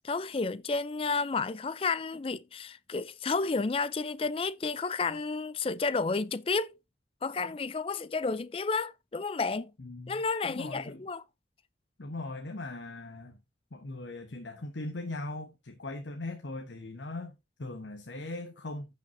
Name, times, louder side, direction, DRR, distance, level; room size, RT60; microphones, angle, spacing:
voice 1, 0.0-6.7 7.2-9.7 10.1-11.2, left 4 dB, 30° left, 0.4 m, -31 dB
voice 2, 9.8-11.0 12.0-13.4 13.7-18.9, left 2 dB, 75° left, 1.1 m, -40 dB
15.0 x 5.7 x 2.7 m
head